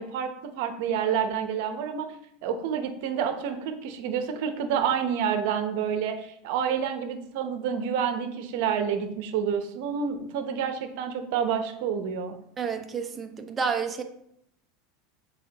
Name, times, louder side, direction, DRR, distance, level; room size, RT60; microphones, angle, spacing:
voice 1, 0.0-2.1 2.4-12.3, right 7 dB, 65° right, 7 dB, 0.9 m, -28 dB
voice 2, 12.6-14.0, right 6 dB, 20° right, 6 dB, 0.6 m, -30 dB
7.2 x 4.6 x 2.9 m, 0.73 s
supercardioid pair, 130°, 0 cm